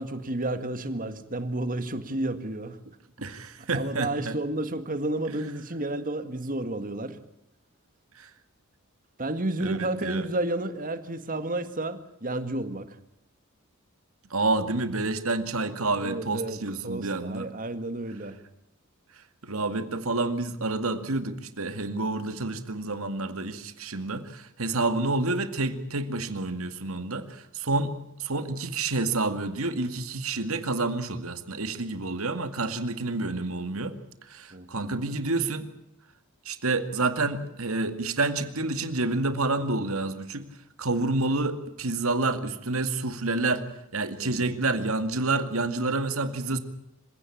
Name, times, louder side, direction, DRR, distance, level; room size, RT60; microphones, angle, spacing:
voice 1, 0.0-2.8 3.7-7.2 9.2-13.0 16.0-16.6 16.8-18.4 34.5-34.7 44.2-44.5, right 2 dB, 40° right, 10 dB, 1.9 m, -31 dB
voice 2, 3.2-4.4 8.2-8.3 9.6-10.3 14.3-17.5 19.4-34.0 34.3-35.7 36.5-40.5 40.8-43.6 43.9-46.6, right 3 dB, 75° right, 9 dB, 2.2 m, -29 dB
26.0 x 16.5 x 8.6 m, 0.82 s
head